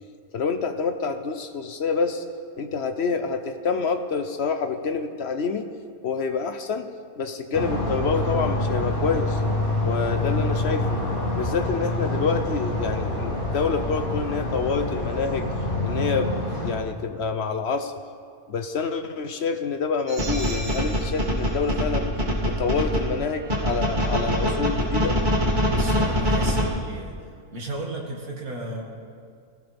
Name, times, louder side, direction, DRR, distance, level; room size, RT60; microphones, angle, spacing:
voice 1, 0.3-2.2 2.6-5.7 6.0-6.9 7.2-9.4 9.8-11.0 11.3-15.5 15.8-17.9 18.5-22.1 22.4-25.2, left 5 dB, 55° left, 7 dB, 0.9 m, -27 dB
sound 1, 7.5-16.7, left 1 dB, 75° left, 2.7 m, -26 dB
sound 2, 20.1-23.0 23.5-26.6, equal, 30° right, 2.5 m, -23 dB
voice 2, 25.7-27.2 27.5-28.8, right 2 dB, 80° right, -1 dB, 2.7 m, -34 dB
19.5 x 16.5 x 3.5 m, 2.2 s
omnidirectional pair, 1.5 m